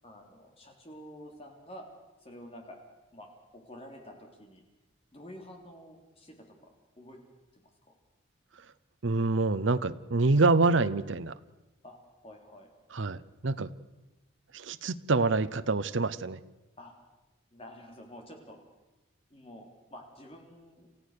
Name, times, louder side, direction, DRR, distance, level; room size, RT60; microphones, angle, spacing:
voice 1, 0.0-1.9 2.2-2.8 3.1-3.3 3.5-4.6 5.1-6.6 7.0-7.2 11.8-12.7 16.8-16.9 17.5-18.6 19.3-20.9, equal, 30° left, 2 dB, 3.4 m, -49 dB
voice 2, 9.0-11.3 12.9-13.7 14.5-16.4, right 3 dB, 70° right, 14 dB, 0.8 m, -26 dB
28.0 x 15.0 x 6.7 m, 1.1 s
head